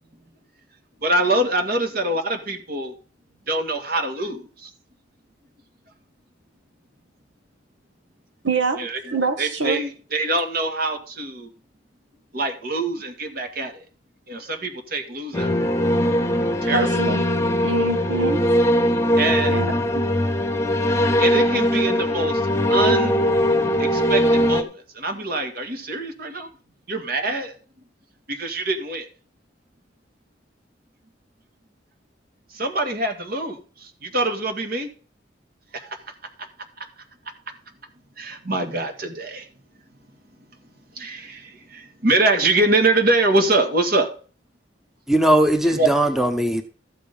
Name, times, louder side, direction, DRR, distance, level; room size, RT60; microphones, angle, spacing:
voice 1, 1.0-2.9 3.5-4.7 8.8-8.9 9.4-11.5 12.3-13.7 14.3-15.5 16.6-16.9 19.2-19.6 21.2-22.4 22.7-23.3 23.8-26.5 26.9-27.5 28.3-29.1 32.5-33.6 34.0-34.9 38.2-39.5 41.0-44.1 45.8-45.9, right 2 dB, 55° right, 2.0 m, -24 dB
voice 2, 8.4-8.8 9.1-9.8 16.7-17.3 17.6-18.4 19.5-20.0, right 3 dB, 80° right, 1.7 m, -25 dB
sound 1, 15.3-24.6, equal, 15° left, 1.0 m, -20 dB
voice 3, 45.1-46.6, right 1 dB, ahead, 0.9 m, -19 dB
13.5 x 6.8 x 5.3 m
head